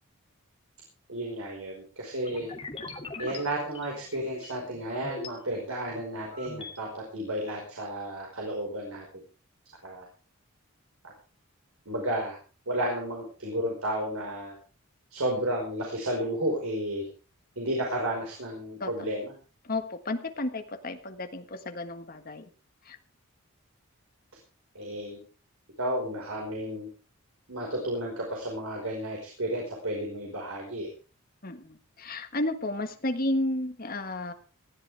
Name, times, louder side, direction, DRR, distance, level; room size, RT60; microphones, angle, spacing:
voice 1, 1.1-2.5 3.2-9.0 9.8-10.0 11.0-11.1 11.8-12.4 12.7-14.5 15.1-17.1 17.5-19.3 24.7-25.2 25.8-26.9 27.5-30.9, right 1 dB, 75° right, -1 dB, 5.0 m, -32 dB
sound 1, 2.2-5.3 5.8-6.8, left 2 dB, 25° left, 2.7 m, -42 dB
voice 2, 19.6-22.5 22.9-23.0 31.4-34.3, left 1 dB, 40° left, 7 dB, 1.6 m, -32 dB
19.5 x 14.5 x 3.5 m, 0.35 s
head